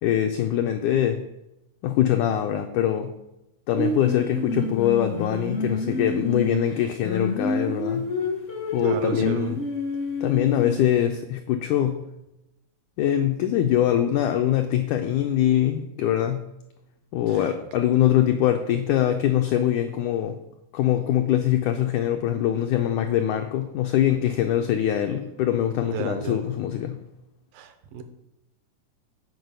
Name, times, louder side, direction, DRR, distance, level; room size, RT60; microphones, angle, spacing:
voice 1, 0.0-1.2 1.8-3.1 3.7-8.1 8.7-9.6 10.2-12.0 13.0-16.5 17.1-20.4 20.7-27.0, left 11 dB, 85° left, 5 dB, 1.7 m, -23 dB
Singing, 3.8-11.0, left 2 dB, 60° left, 0.8 m, -28 dB
voice 2, 8.8-9.6 17.3-17.5 25.8-26.5 27.5-28.0, right 6 dB, 80° right, 8 dB, 2.5 m, -34 dB
7.8 x 4.7 x 6.7 m, 0.91 s
omnidirectional pair, 4.2 m